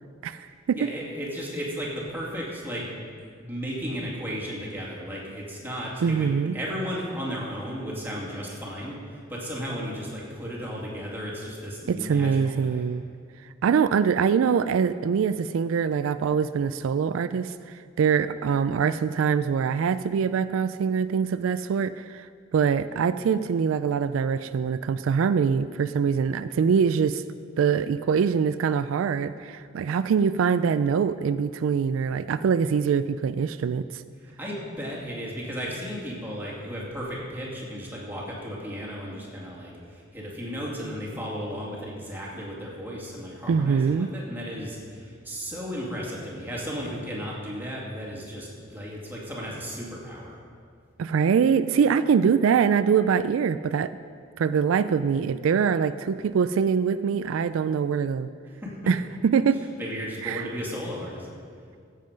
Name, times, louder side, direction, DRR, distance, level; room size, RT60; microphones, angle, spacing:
voice 1, 0.2-0.9 6.0-6.6 11.9-13.0 13.6-17.5 18.0-22.3 22.5-27.2 27.6-34.0 43.5-44.1 51.0-53.9 54.4-58.3 58.9-59.0 59.2-59.7 60.2-60.5, right 6 dB, 80° right, 13 dB, 0.3 m, -23 dB
voice 2, 0.8-3.0 3.4-6.3 6.5-12.9 34.4-50.4 58.6-58.7 59.8-61.3, equal, 10° right, -5 dB, 2.5 m, -34 dB
15.0 x 7.5 x 5.2 m, 2.1 s
head